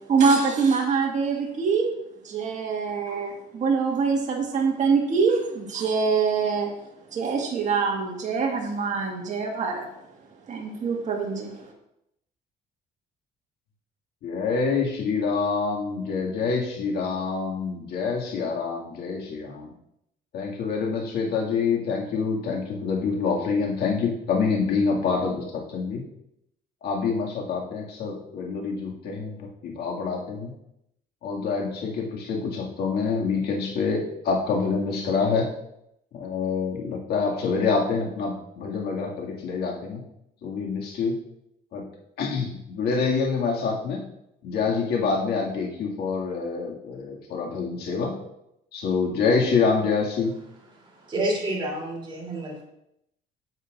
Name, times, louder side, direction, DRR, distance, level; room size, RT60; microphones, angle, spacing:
voice 1, 0.1-1.9 2.2-6.7 7.1-9.9 10.5-11.6, right 5 dB, 45° right, 0 dB, 1.7 m, -24 dB
voice 2, 14.2-19.7 20.3-26.0 26.8-30.5 31.2-35.5 36.1-40.0 40.4-41.2 41.7-41.8 42.2-44.0 44.4-48.1 48.7-50.3, left 5 dB, 70° left, -1 dB, 2.0 m, -26 dB
voice 3, 50.7-52.6, right 1 dB, 30° right, -2 dB, 3.0 m, -29 dB
9.7 x 7.4 x 2.5 m, 0.79 s
cardioid pair, 110°, 17 cm